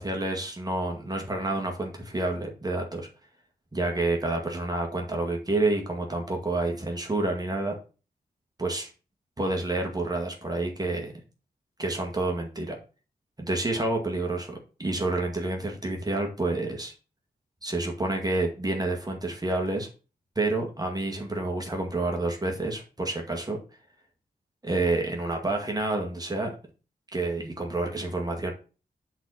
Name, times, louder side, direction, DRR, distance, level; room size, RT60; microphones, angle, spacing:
voice 1, 0.0-3.1 3.7-7.7 8.6-8.9 9.4-11.1 11.8-12.8 13.4-16.9 17.6-19.9 20.4-23.6 24.6-26.5 27.1-28.5, right 2 dB, 25° right, 1 dB, 2.1 m, -29 dB
7.9 x 4.3 x 6.4 m, 0.35 s
wide cardioid pair, 85°, 16 cm